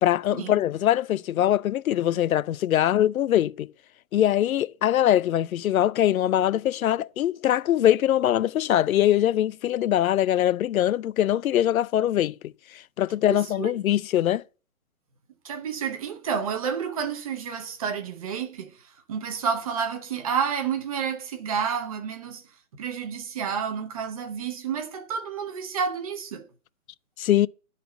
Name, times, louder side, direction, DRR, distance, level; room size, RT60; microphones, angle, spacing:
voice 1, 0.0-3.7 4.1-14.4 27.2-27.5, left 12 dB, 85° left, 0.5 m, -22 dB
voice 2, 13.3-13.8 15.4-22.4 22.7-26.5, right 7 dB, 25° right, 0.8 m, -30 dB
11.0 x 4.2 x 6.9 m
hypercardioid pair, 160°, 41 cm